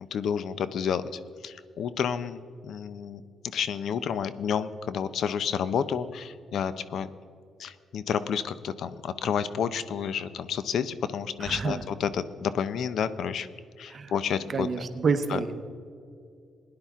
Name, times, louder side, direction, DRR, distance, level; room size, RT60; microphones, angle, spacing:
voice 1, 0.1-2.4 2.6-3.2 3.5-7.1 7.6-13.5 13.8-14.7 15.3-15.4, left 7 dB, 65° left, 14 dB, 0.6 m, -30 dB
voice 2, 11.4-11.8 13.9-14.1 14.5-15.6, right 5 dB, 45° right, 9 dB, 1.0 m, -28 dB
17.0 x 10.5 x 3.7 m, 2.3 s
cardioid pair, 90°, 0 cm